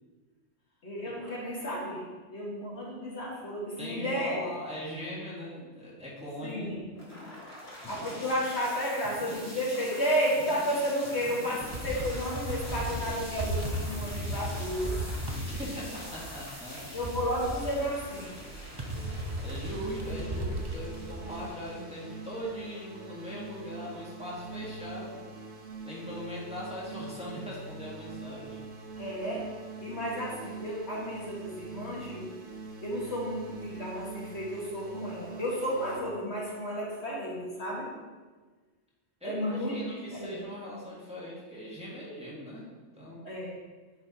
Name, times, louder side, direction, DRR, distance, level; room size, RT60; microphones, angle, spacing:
voice 1, 0.8-2.1 2.3-4.4 6.4-6.8 7.9-15.0 16.9-18.4 19.9-20.0 29.0-29.4 29.8-32.3 32.8-37.9 39.2-39.8 40.1-40.4 43.2-43.5, equal, 60° left, -5 dB, 2.1 m, -32 dB
voice 2, 3.8-6.9 15.4-17.0 19.4-25.3 25.8-28.6 39.2-42.7 42.9-43.2, equal, 5° right, -6 dB, 1.7 m, -40 dB
sound 1, 7.0-23.0, left 1 dB, 10° left, 2.4 m, -44 dB
sound 2, 11.6-21.5, right 1 dB, 30° right, 0.5 m, -36 dB
sound 3, 19.0-36.0, right 3 dB, 80° right, 1.4 m, -44 dB
9.5 x 4.7 x 4.2 m, 1.4 s
omnidirectional pair, 1.3 m